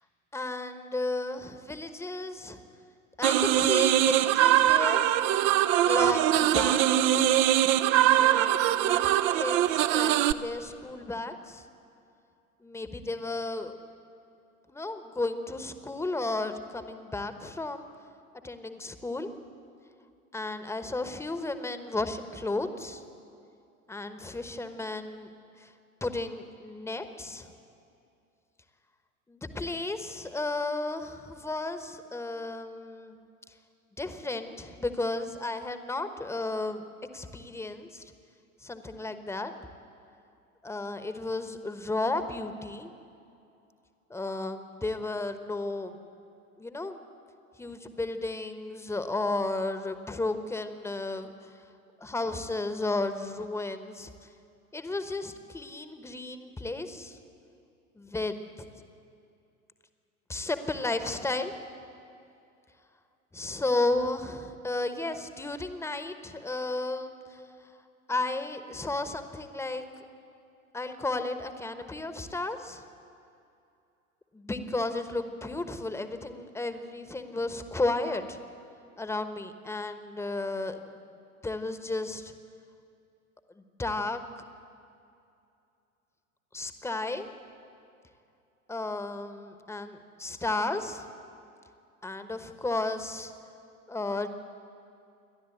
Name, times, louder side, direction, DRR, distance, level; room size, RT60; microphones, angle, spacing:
voice 1, 0.3-2.6 3.2-5.1 5.8-7.3 8.1-11.6 12.6-13.7 14.7-17.9 18.4-19.3 20.3-23.0 23.9-25.3 25.6-25.7 26.0-27.5 29.3-33.2 34.0-36.8 37.1-38.1 38.6-39.5 40.6-42.9 44.1-46.0 46.6-47.0 47.6-51.3 52.0-54.1 54.7-57.2 57.9-58.7 60.3-61.5 63.3-67.4 68.1-69.9 70.7-72.8 74.3-78.4 79.0-80.9 81.4-82.3 83.6-84.2 86.5-87.2 88.7-91.1 92.0-93.3 93.9-94.3, left 2 dB, 5° left, 9 dB, 1.1 m, -33 dB
sound 1, 3.2-10.3, right 12 dB, 30° right, 0.6 m, -22 dB
28.5 x 12.0 x 8.2 m, 2.6 s
figure-of-eight pair, 90°, 43 cm